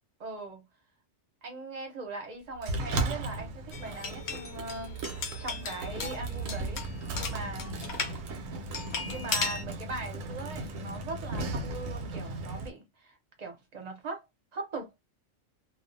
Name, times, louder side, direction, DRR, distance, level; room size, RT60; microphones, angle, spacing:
voice 1, 0.2-0.6 1.4-6.8 7.1-7.9 9.0-14.2 14.5-15.0, right 3 dB, 35° right, 0.8 m, -40 dB
Sliding door, 2.6-12.7, right 2 dB, 90° right, 1.0 m, -36 dB
sound 1, 3.7-8.2 8.7-9.6, left 5 dB, 65° left, 0.8 m, -36 dB
sound 2, 4.4-4.7 6.1-6.4 7.8-9.2, equal, 30° left, 0.9 m, -57 dB
2.3 x 2.3 x 2.6 m
omnidirectional pair, 1.3 m